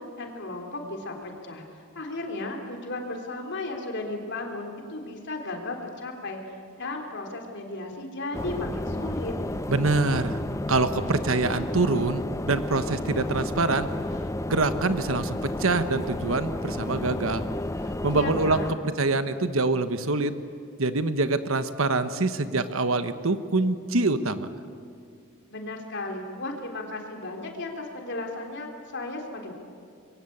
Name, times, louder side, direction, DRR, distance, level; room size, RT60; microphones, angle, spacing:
voice 1, 0.0-1.6 2.0-9.3 18.1-18.8 25.5-29.5, left 2 dB, 55° left, 2 dB, 3.6 m, -35 dB
sound 1, 8.3-18.7, left 1 dB, 15° left, 0.6 m, -32 dB
voice 2, 9.7-10.4 10.7-13.9 14.5-17.4 18.0-18.6 19.0-20.3 20.8-24.5, right 3 dB, 70° right, 11 dB, 1.2 m, -25 dB
25.5 x 22.5 x 8.7 m, 2.4 s
head